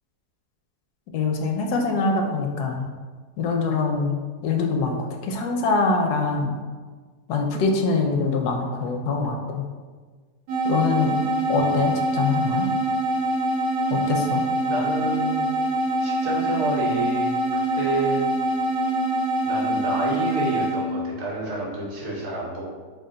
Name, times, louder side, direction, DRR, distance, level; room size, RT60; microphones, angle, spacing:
voice 1, 1.1-2.9 3.4-5.0 5.2-6.6 7.3-9.7 10.6-11.2 11.5-12.7 13.9-14.4, left 4 dB, 75° left, 3 dB, 1.1 m, -24 dB
sound 1, 10.5-20.9, right 1 dB, 75° right, 1.1 m, -24 dB
voice 2, 14.6-15.5 16.0-17.3 17.7-18.2 19.4-22.8, right 1 dB, 50° right, -3 dB, 0.9 m, -29 dB
3.7 x 2.3 x 3.7 m, 1.5 s
omnidirectional pair, 1.7 m